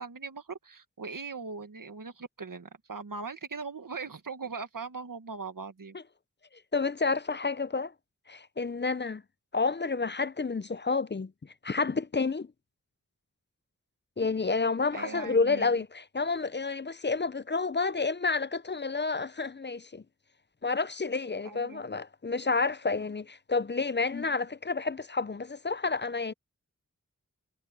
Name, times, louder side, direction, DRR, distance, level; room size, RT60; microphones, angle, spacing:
voice 1, 0.0-6.0 14.9-15.7 21.4-21.8, right 4 dB, 80° right, 1.6 m, -40 dB
voice 2, 6.7-7.9 8.3-9.2 9.5-12.5 14.2-20.0 20.6-26.3, left 4 dB, 35° left, 0.5 m, -30 dB
wide cardioid pair, 50°, 32 cm